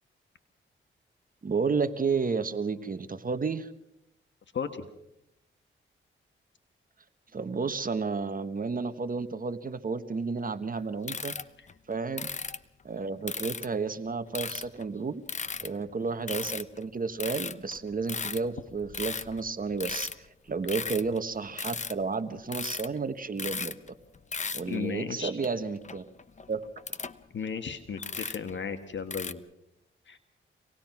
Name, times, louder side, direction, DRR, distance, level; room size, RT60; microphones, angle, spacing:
voice 1, 1.4-3.7 7.3-11.3 11.9-12.3 12.8-15.2 15.6-20.1 20.5-23.7 24.5-26.1 26.5-26.7, right 4 dB, 40° right, 11 dB, 1.3 m, -31 dB
voice 2, 4.5-4.9 11.6-11.7 24.7-25.3 27.3-29.4 30.1-30.2, left 6 dB, 60° left, 7 dB, 1.5 m, -35 dB
sound 1, 11.1-12.6 13.3-13.7 14.3-14.8 15.3-15.9 16.3-16.8 17.2-20.2 20.5-21.3 21.6-22.0 22.3-23.0 23.3-23.9 24.1-24.8 25.4-25.5 25.8-27.2 27.5-27.6 27.9-28.5 29.1-29.3, left 5 dB, 35° left, 0.9 m, -36 dB
26.0 x 19.0 x 6.0 m, 0.82 s
cardioid pair, 75°, 21 cm